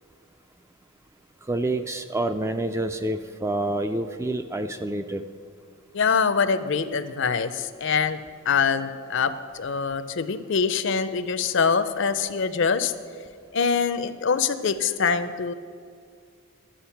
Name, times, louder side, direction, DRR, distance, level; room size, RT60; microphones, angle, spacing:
voice 1, 1.5-5.2, right 1 dB, 15° right, 9 dB, 0.3 m, -27 dB
voice 2, 5.9-8.2 8.5-12.9 13.5-15.5, left 5 dB, 55° left, 12 dB, 0.5 m, -24 dB
11.5 x 7.7 x 5.8 m, 2.1 s
head